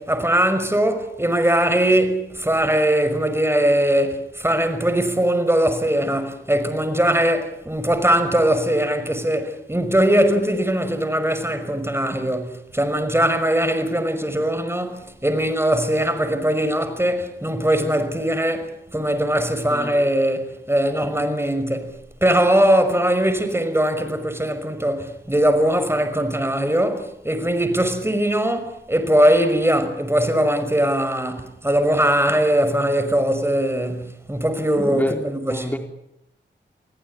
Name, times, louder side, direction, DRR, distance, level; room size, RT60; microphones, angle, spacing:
voice 1, 0.0-21.9 22.2-35.7, right 1 dB, 10° right, 5.7 m, -21 dB
voice 2, 34.8-35.2 35.5-35.8, equal, 10° left, 4.4 m, -28 dB
29.0 x 17.5 x 9.8 m
cardioid pair, 50°, 20 cm